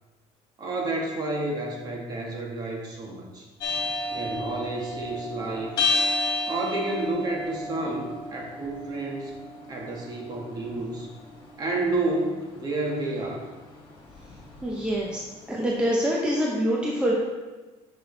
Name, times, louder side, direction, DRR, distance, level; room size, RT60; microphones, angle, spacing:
voice 1, 0.6-3.5 4.1-6.0 6.5-9.4 9.7-11.1 11.6-13.5, right 2 dB, 30° right, -1 dB, 1.6 m, -30 dB
sound 1, 3.6-15.7, left 2 dB, 35° left, 2.0 m, -33 dB
voice 2, 14.6-15.2 15.5-17.1, equal, 10° right, -3 dB, 0.8 m, -25 dB
9.8 x 5.7 x 3.3 m, 1.3 s
cardioid pair, 150°, 13 cm